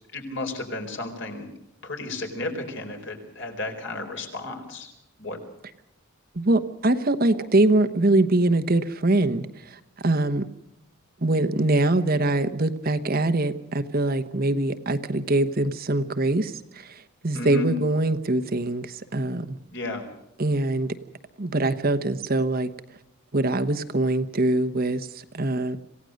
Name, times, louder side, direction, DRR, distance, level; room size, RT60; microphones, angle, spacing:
voice 1, 0.1-1.5 1.8-4.9 5.2-5.4 17.3-17.7 19.7-20.1, left 2 dB, 55° left, 4 dB, 4.4 m, -33 dB
voice 2, 6.3-10.4 11.2-19.6 20.4-20.9 21.4-22.7 23.3-25.8, right 2 dB, 40° right, 10 dB, 1.0 m, -23 dB
27.0 x 17.0 x 6.5 m, 0.83 s
head